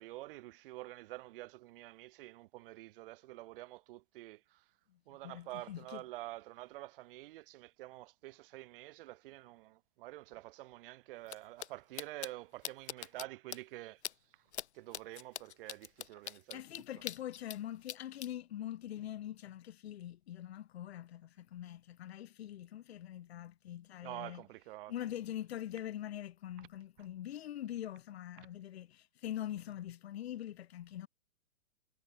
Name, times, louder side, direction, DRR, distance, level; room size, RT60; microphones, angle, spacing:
voice 1, 0.0-4.6 5.1-14.0 14.7-16.8 24.0-24.9 28.4-28.5, right 18 dB, 55° right, 2.9 m, -48 dB
voice 2, 5.2-6.0 16.5-24.4 24.9-31.1, left 12 dB, 70° left, 3.9 m, -43 dB
sound 1, 11.3-11.4 11.6-11.7 12.0-12.3 12.6-13.2 13.5-13.6 14.0-14.1 14.5-14.7 14.9-17.6 17.9-18.3, left 10 dB, 85° left, 1.3 m, -41 dB
hypercardioid pair, 130°, 33 cm